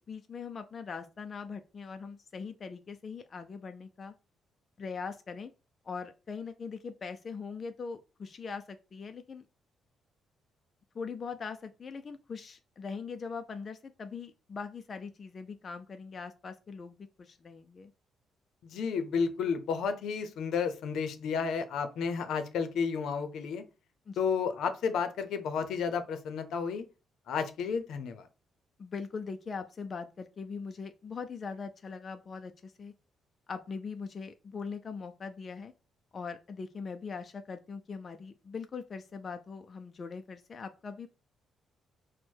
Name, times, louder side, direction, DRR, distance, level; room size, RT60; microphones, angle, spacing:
voice 1, 0.0-4.1 4.8-5.5 5.8-9.4 10.9-17.9 24.1-24.2 28.8-32.9 33.5-35.7 36.1-41.1, left 5 dB, 35° left, 7 dB, 0.4 m, -41 dB
voice 2, 18.6-23.6 24.2-26.8 27.3-28.3, left 6 dB, 75° left, 9 dB, 0.6 m, -32 dB
4.5 x 2.1 x 4.5 m, 0.31 s
cardioid pair, 120°, 0 cm